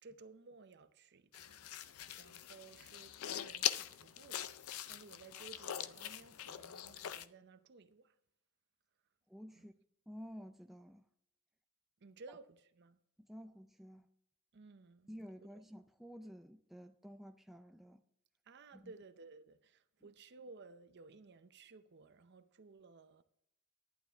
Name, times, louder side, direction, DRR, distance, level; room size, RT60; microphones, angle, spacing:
voice 1, 0.0-4.5 4.9-8.1 9.5-9.7 12.0-13.0 14.5-15.1 15.4-15.6 18.5-23.2, right 3 dB, 50° right, 0.6 m, -57 dB
sound 1, 1.3-7.2, left 11 dB, 75° left, 0.5 m, -42 dB
voice 2, 9.3-9.7 10.1-11.0 13.3-14.1 15.1-18.0 18.7-18.9, equal, ahead, 0.3 m, -52 dB
11.5 x 9.6 x 3.4 m
head